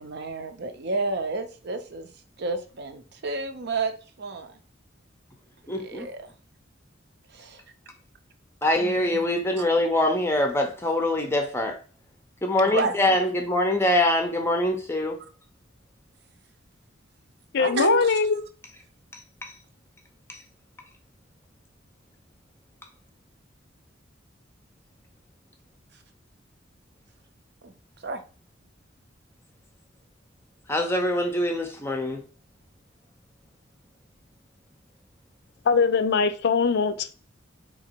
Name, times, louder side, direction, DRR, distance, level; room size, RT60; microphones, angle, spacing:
voice 1, 0.0-2.1 2.4-4.6 5.8-6.3 7.3-7.6 8.8-9.0 9.6-9.7 12.6-13.1 17.6-18.2 27.6-27.7 28.0-28.2, right 3 dB, 60° right, 0.7 m, -30 dB
voice 2, 5.7-6.1 8.6-11.8 12.4-15.2 19.4-19.5 20.3-20.4 30.7-32.2, left 1 dB, 15° left, 0.6 m, -24 dB
voice 3, 17.5-18.4 35.7-37.2, left 5 dB, 60° left, 0.5 m, -22 dB
3.9 x 2.9 x 4.4 m
head